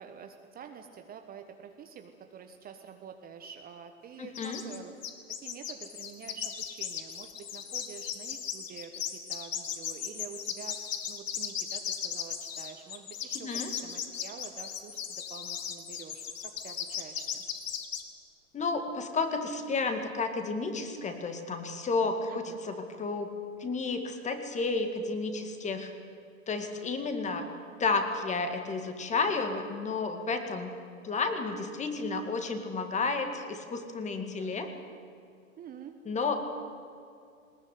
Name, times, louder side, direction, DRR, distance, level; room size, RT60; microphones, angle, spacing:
voice 1, 0.0-4.9 5.4-17.4 22.3-22.6 34.3-34.8 35.6-36.0, right 7 dB, 20° right, 6 dB, 1.2 m, -48 dB
voice 2, 4.2-4.6 13.4-13.7 18.5-23.3 23.6-25.9 26.5-27.4 27.8-30.7 31.0-34.7 36.1-36.4, left 4 dB, 15° left, 6 dB, 2.2 m, -31 dB
sound 1, 4.3-4.8 5.0-18.0, left 8 dB, 65° left, 2.4 m, -37 dB
20.0 x 18.5 x 9.5 m, 2.4 s
hypercardioid pair, 115°, 41 cm